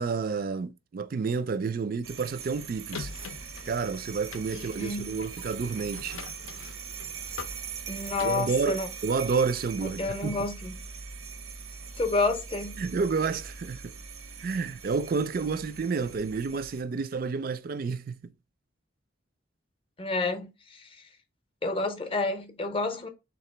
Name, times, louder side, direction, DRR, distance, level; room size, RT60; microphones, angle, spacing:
voice 1, 0.0-3.1 3.7-6.2 8.2-10.3 12.8-13.9 14.4-18.3, right 5 dB, 45° right, 0.3 m, -30 dB
sound 1, 2.0-16.8, right 6 dB, 80° right, 0.6 m, -41 dB
sound 2, 2.9-8.3, left 5 dB, 85° left, 0.6 m, -44 dB
voice 2, 4.5-5.3 7.9-8.9 10.0-10.7 12.0-12.8 20.0-20.9 21.6-23.1, left 3 dB, 25° left, 0.6 m, -29 dB
3.7 x 2.9 x 4.3 m
head